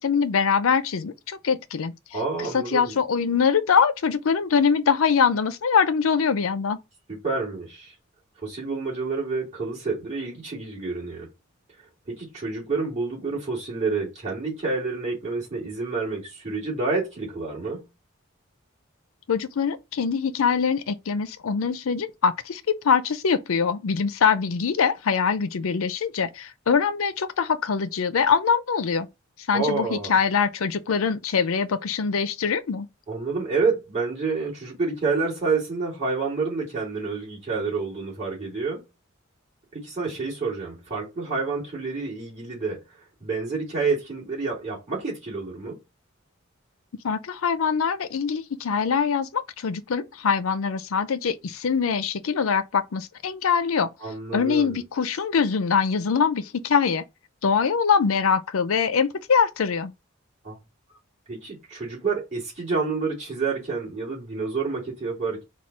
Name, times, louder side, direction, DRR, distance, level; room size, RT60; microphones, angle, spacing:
voice 1, 0.0-1.9 2.5-6.8 19.3-29.1 29.5-32.9 47.0-53.9 54.3-57.0 57.4-59.9, left 6 dB, 80° left, 0.5 m, -23 dB
voice 2, 2.1-3.0 7.1-7.9 8.4-11.3 12.1-17.9 29.5-30.2 33.1-38.8 39.7-42.8 43.2-45.8 54.0-54.8 60.4-60.6 61.3-65.4, right 4 dB, 35° right, 2.5 m, -28 dB
4.3 x 2.3 x 4.6 m
head